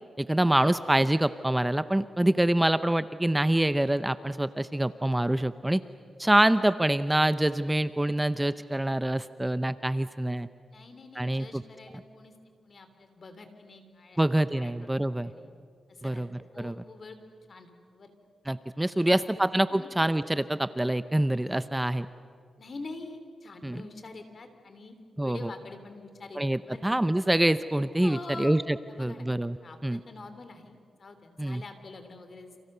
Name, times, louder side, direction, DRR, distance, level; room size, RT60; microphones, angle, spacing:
voice 1, 0.2-5.8 6.2-10.5 11.2-11.6 14.2-15.3 16.0-16.3 16.6-16.8 18.5-22.1 23.6-23.8 25.2-25.5 26.4-29.6 29.8-30.0 31.4-31.6, right 1 dB, 10° right, 13 dB, 0.7 m, -26 dB
voice 2, 10.7-12.3 12.6-14.3 14.6-14.9 15.2-15.5 15.9-16.2 16.5-17.2 17.5-18.1 18.9-19.4 19.7-19.9 22.6-24.9 25.2-26.8 28.0-28.6 28.9-29.3 29.6-32.5, left 3 dB, 50° left, 8 dB, 3.2 m, -45 dB
30.0 x 28.0 x 6.8 m, 2.2 s
cardioid pair, 80°, 0 cm